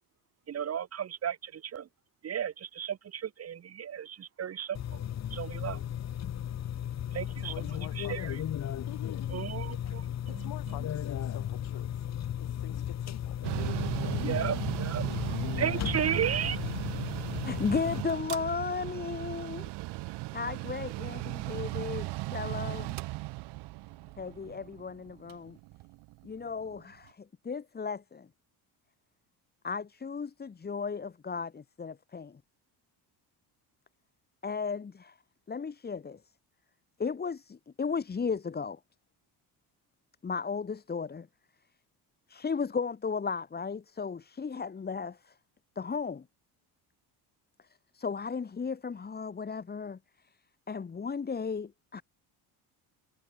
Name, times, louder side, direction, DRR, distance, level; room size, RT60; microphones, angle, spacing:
voice 1, 0.5-1.9 2.2-5.0 5.3-5.8 7.1-8.4 9.3-10.5 14.2-15.0 15.5-16.6, right 9 dB, 40° right, 2.9 m, -34 dB
sound 1, 4.7-18.0, left 10 dB, 40° left, 2.0 m, -35 dB
voice 2, 7.3-8.3 8.9-9.6 10.3-11.9 12.4-13.4, left 16 dB, 70° left, 7.3 m, -47 dB
Mechanical fan, 13.4-26.8, right 21 dB, 85° right, 2.8 m, -37 dB
voice 3, 17.4-19.7 20.3-22.9 24.2-25.6 26.2-28.3 29.6-32.4 34.4-35.2 35.5-36.2 37.0-38.8 40.2-41.3 42.3-45.3 45.8-46.2 47.9-50.0 50.7-52.0, left 5 dB, 25° left, 3.2 m, -35 dB
cardioid pair, 140°, 40 cm